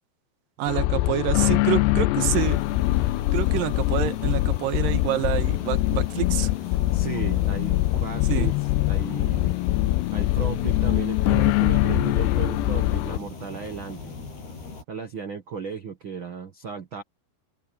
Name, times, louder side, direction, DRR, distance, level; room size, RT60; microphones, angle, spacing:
voice 1, 0.6-2.6 3.3-6.5 8.3-8.5, right 12 dB, 65° right, 2.7 m, -27 dB
sound 1, 0.7-13.2, left 18 dB, 90° left, 2.8 m, -23 dB
sound 2, 2.2-14.8, left 4 dB, 70° left, 9.7 m, -39 dB
voice 2, 6.9-8.5 8.8-9.6 10.1-14.1 14.9-17.0, right 6 dB, 85° right, 1.0 m, -35 dB
open air
omnidirectional pair, 4.8 m